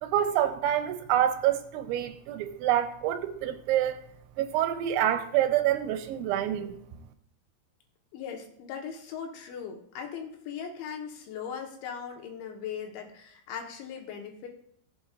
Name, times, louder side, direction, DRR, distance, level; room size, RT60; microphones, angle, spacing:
voice 1, 0.0-4.0 4.4-6.8, right 11 dB, 80° right, 2.9 m, -27 dB
voice 2, 8.1-14.5, left 7 dB, 75° left, 3.6 m, -39 dB
18.0 x 7.8 x 2.5 m
omnidirectional pair, 5.5 m